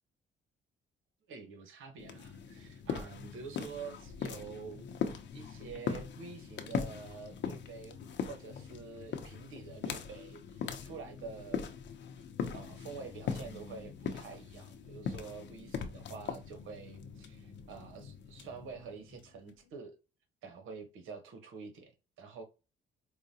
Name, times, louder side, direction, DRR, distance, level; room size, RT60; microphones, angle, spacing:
voice 1, 1.3-4.8 5.3-11.6 12.5-20.0 20.4-22.4, right 5 dB, 85° right, 1.0 m, -47 dB
sound 1, 2.0-19.5, left 6 dB, 65° left, 0.7 m, -41 dB
4.8 x 2.2 x 2.7 m
cardioid pair, 90°, 20 cm